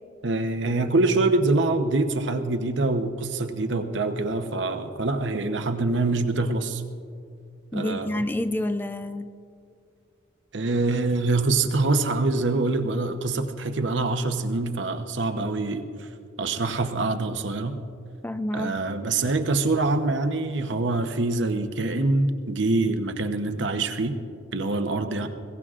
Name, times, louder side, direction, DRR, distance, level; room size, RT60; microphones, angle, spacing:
voice 1, 0.2-6.8 7.7-8.3 10.5-16.1 16.4-17.8 18.5-24.2 24.5-25.3, right 2 dB, 75° right, 7 dB, 0.9 m, -25 dB
voice 2, 7.7-9.3 18.2-18.7, left 1 dB, 10° left, 11 dB, 0.3 m, -28 dB
21.5 x 17.5 x 2.5 m, 2.4 s
head